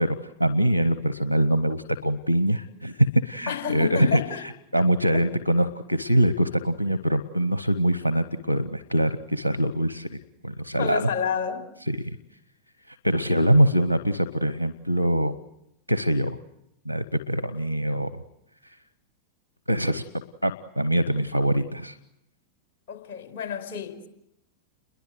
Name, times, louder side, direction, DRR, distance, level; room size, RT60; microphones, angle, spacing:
voice 1, 0.0-10.1 10.4-11.1 11.9-12.2 12.9-15.3 15.9-16.4 16.8-18.2 18.6-18.7 19.7-20.0 20.4-22.0, right 1 dB, 90° left, 0.9 m, -23 dB
voice 2, 3.5-4.4 10.8-11.7 22.9-24.1, left 7 dB, 50° left, 5.0 m, -30 dB
29.5 x 22.0 x 8.0 m
figure-of-eight pair, 90°, 0 cm